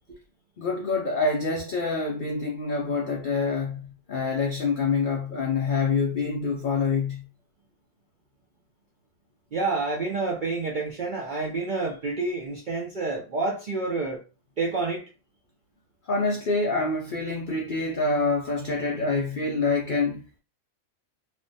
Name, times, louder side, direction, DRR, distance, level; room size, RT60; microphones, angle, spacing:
voice 1, 0.6-7.2 16.1-20.2, left 4 dB, 70° left, 0.4 m, -26 dB
voice 2, 9.5-14.2 14.6-15.0, right 3 dB, 60° right, 0.5 m, -28 dB
3.3 x 2.1 x 2.6 m
omnidirectional pair, 1.4 m